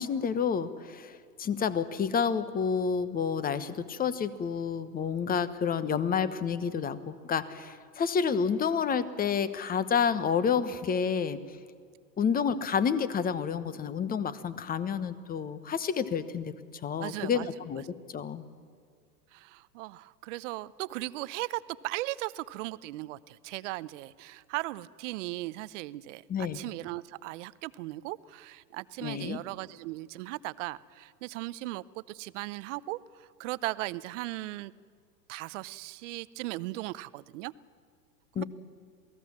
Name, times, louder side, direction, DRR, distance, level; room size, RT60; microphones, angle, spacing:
voice 1, 0.0-11.4 12.2-16.5 16.8-17.8 18.1-18.4 26.3-26.6 29.0-29.4 38.3-38.4, left 6 dB, 20° left, 14 dB, 1.1 m, -29 dB
voice 2, 17.0-17.5 19.3-34.7 35.3-37.5 38.4-38.5, right 18 dB, 50° right, 18 dB, 0.8 m, -37 dB
28.0 x 18.5 x 7.4 m, 2.2 s
hypercardioid pair, 115°, 49 cm